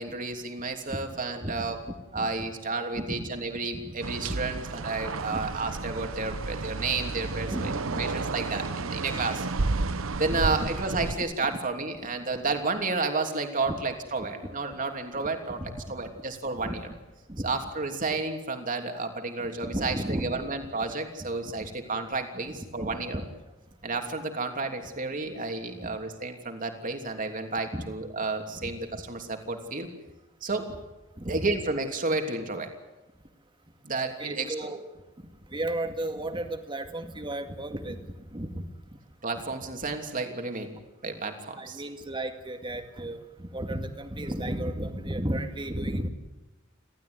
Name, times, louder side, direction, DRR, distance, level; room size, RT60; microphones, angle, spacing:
voice 1, 0.0-1.8 2.1-9.4 10.2-15.6 15.9-16.9 17.4-23.2 23.8-29.9 30.4-30.7 31.3-32.7 33.8-34.7 39.2-40.7 41.0-41.8, right 3 dB, 40° right, 5 dB, 3.1 m, -31 dB
voice 2, 2.9-3.3 3.7-3.9 4.3-4.4 5.3-5.5 7.0-7.1 7.5-8.1 9.2-9.3 10.3-10.7 13.7-13.8 15.6-15.9 16.6-16.9 17.3-17.5 19.4-20.4 21.6-21.7 22.5-23.2 27.7-27.8 28.6-28.7 31.2-31.5 34.2-34.8 35.5-38.0 38.3-38.6 41.6-46.1, right 1 dB, 25° right, 6 dB, 2.2 m, -34 dB
sound 1, 4.0-11.1, right 3 dB, 80° right, 0.9 m, -32 dB
30.0 x 13.0 x 9.7 m, 1.1 s
head